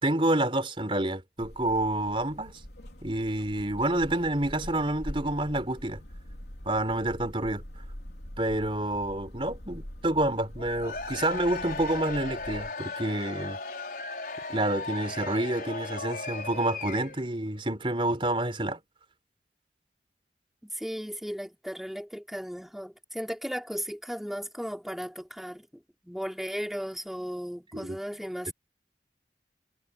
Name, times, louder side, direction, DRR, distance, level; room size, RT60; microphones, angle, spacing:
voice 1, 0.0-2.6 3.0-6.0 6.7-7.6 8.4-13.6 14.5-18.8 27.7-28.0, right 1 dB, 30° right, 4.1 m, -28 dB
sound 1, 1.4-12.7, equal, 70° left, 3.6 m, -44 dB
Cheering / Crowd, 10.6-17.3, left 3 dB, 55° left, 5.7 m, -37 dB
voice 2, 20.6-25.7 26.0-28.5, equal, ahead, 3.3 m, -36 dB
head